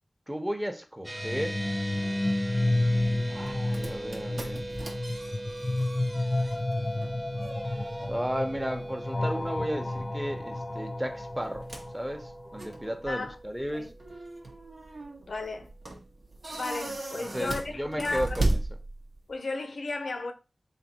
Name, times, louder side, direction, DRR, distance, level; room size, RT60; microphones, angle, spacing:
voice 1, 0.3-1.6 3.3-4.6 8.1-11.7 11.9-13.9 16.9-18.6, equal, 10° right, 0.8 m, -34 dB
sound 1, 1.0-12.9, left 2 dB, 30° left, 0.6 m, -31 dB
sound 2, 1.0-14.7, right 1 dB, 35° right, 1.1 m, -41 dB
sound 3, 3.0-19.4, right 2 dB, 70° right, 0.9 m, -37 dB
voice 2, 15.3-15.7 16.5-18.5 19.3-20.3, left 3 dB, 85° left, 0.6 m, -34 dB
3.4 x 2.6 x 4.2 m
wide cardioid pair, 55°, 0 cm